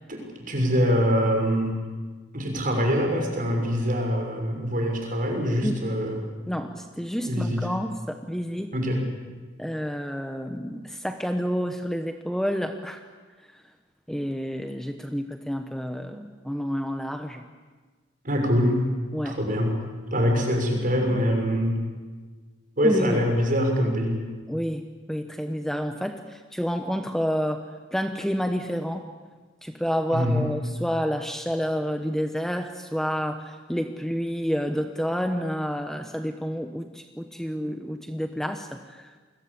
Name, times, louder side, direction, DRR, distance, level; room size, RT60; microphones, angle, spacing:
voice 1, 0.1-1.7 2.3-6.2 7.2-7.6 8.7-9.0 16.1-16.3 18.2-18.8 19.2-19.7 20.1-21.8 22.8-24.2 30.1-30.4, equal, 45° right, 2 dB, 6.4 m, -24 dB
voice 2, 6.5-8.7 9.6-13.0 13.5-13.6 14.1-17.5 19.1-19.4 22.8-23.2 24.5-27.6 27.9-29.1 29.6-39.1, equal, ahead, 6 dB, 1.0 m, -29 dB
29.5 x 22.0 x 8.6 m, 1.4 s
head